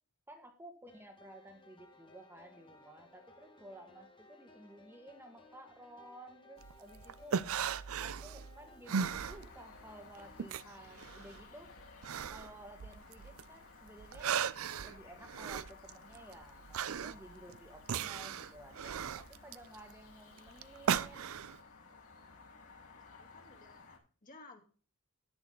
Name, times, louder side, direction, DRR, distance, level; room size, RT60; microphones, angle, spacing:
voice 1, 0.3-7.4 8.0-11.7 12.3-14.4 14.8-21.3, right 1 dB, 10° right, 3 dB, 1.6 m, -54 dB
sound 1, 0.9-10.5, left 2 dB, 20° left, 1.8 m, -60 dB
sound 2, 6.6-9.9 10.2-13.5 13.9-21.6, right 7 dB, 65° right, 0.5 m, -37 dB
sound 3, 8.9-24.0, left 4 dB, 75° left, 5.5 m, -57 dB
voice 2, 23.1-24.6, left 3 dB, 40° left, 3 dB, 2.5 m, -57 dB
10.5 x 10.5 x 3.9 m, 0.40 s
head